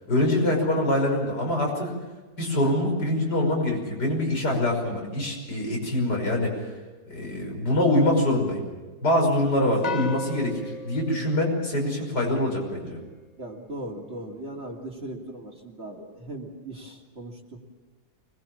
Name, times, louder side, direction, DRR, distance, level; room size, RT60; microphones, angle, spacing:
voice 1, 0.1-1.9 2.4-6.5 7.1-8.7 9.0-10.6 10.8-13.0, left 1 dB, 85° left, 0 dB, 6.3 m, -24 dB
sound 1, 9.8-12.4, left 4 dB, 45° left, 0.5 m, -36 dB
voice 2, 13.4-17.7, right 1 dB, 40° right, 0 dB, 3.1 m, -38 dB
24.5 x 21.0 x 7.3 m, 1.3 s
omnidirectional pair, 1.8 m